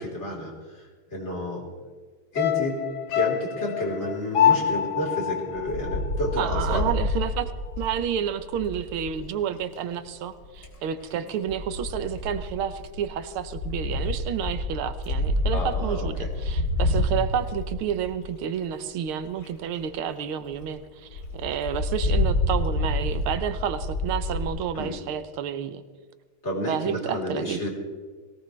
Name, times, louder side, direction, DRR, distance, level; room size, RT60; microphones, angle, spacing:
voice 1, 0.0-1.7 2.3-2.8 3.1-6.9 15.5-16.1 24.7-24.9 26.4-27.7, left 1 dB, 30° left, -2 dB, 4.2 m, -30 dB
sound 1, 2.4-6.8 7.0-7.1, left 9 dB, 65° left, 1.2 m, -26 dB
Wind, 5.6-9.2 10.3-10.8 11.5-18.4 19.1-19.2 19.4-19.5 19.8-19.9 20.2-20.3 20.5-20.7 21.1-24.4, left 1 dB, 45° left, 3.1 m, -28 dB
voice 2, 6.4-7.5 7.8-25.8 26.7-27.7, right 8 dB, 85° right, 11 dB, 1.8 m, -30 dB
21.0 x 18.0 x 3.3 m, 1.5 s
omnidirectional pair, 2.3 m